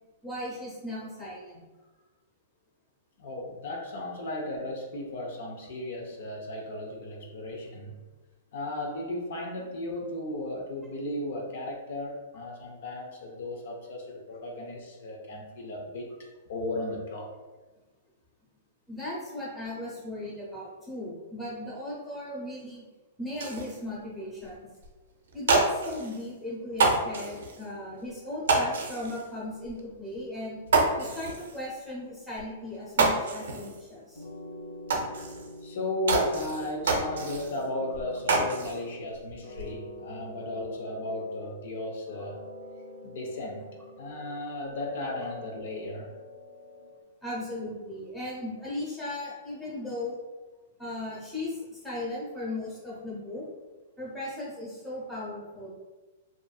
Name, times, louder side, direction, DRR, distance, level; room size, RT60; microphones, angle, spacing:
voice 1, 0.2-1.6 18.9-22.9 23.2-24.7 25.3-30.6 31.0-34.2 47.2-50.2 50.8-53.4 54.0-55.7, left 1 dB, 5° left, -7 dB, 0.8 m, -37 dB
voice 2, 3.2-8.0 8.5-16.1 16.5-17.3 35.6-42.4 43.0-43.7 44.0-46.1, left 1 dB, 65° left, 0 dB, 0.4 m, -35 dB
sound 1, 23.3-23.8 24.4-24.5 24.8-24.9 25.3-26.3 26.7-27.6 28.5-29.3 29.7-29.8 30.1-30.2 30.7-31.6 32.4-32.5 32.7-33.8 34.2-34.3 34.9-35.6 36.1-37.6 37.9-38.8 39.2-39.7, right 3 dB, 90° right, 0.4 m, -27 dB
sound 2, 33.6-33.9 34.2-36.5 36.8-39.1 39.4-41.8 42.1-44.4 44.7-47.0, left 1 dB, 35° left, 0.8 m, -44 dB
2.5 x 2.4 x 2.3 m, 1.2 s
hypercardioid pair, 160°, 0 cm